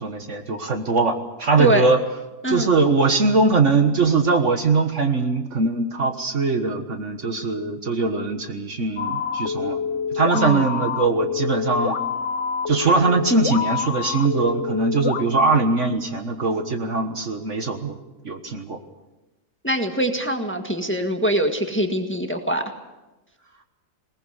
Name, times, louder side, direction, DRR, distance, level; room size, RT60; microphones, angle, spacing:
voice 1, 0.0-2.0 2.5-9.8 10.1-12.0 12.7-18.0 18.3-18.8, right 3 dB, 50° right, 6 dB, 1.7 m, -21 dB
sound 1, 9.0-15.2, left 6 dB, 50° left, 1.1 m, -27 dB
voice 2, 19.6-22.6, right 1 dB, 10° left, 5 dB, 1.6 m, -23 dB
21.0 x 19.0 x 8.1 m, 1.1 s
omnidirectional pair, 1.7 m